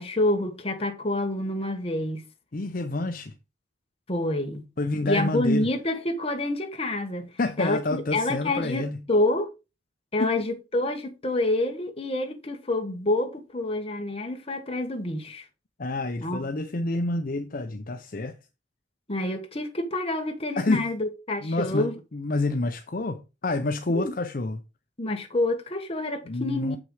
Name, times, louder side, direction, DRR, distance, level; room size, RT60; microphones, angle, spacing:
voice 1, 0.0-2.3 4.1-4.6 5.0-7.3 7.6-8.8 9.1-9.5 10.1-15.4 16.2-16.5 19.1-21.9 23.9-24.1 25.0-26.8, left 1 dB, 35° left, 1.4 m, -27 dB
voice 2, 2.5-3.3 4.8-5.7 7.4-9.0 10.2-10.3 15.8-18.4 20.6-20.9 21.4-24.6 26.3-26.8, left 2 dB, 50° left, 0.7 m, -28 dB
7.6 x 6.1 x 4.8 m
head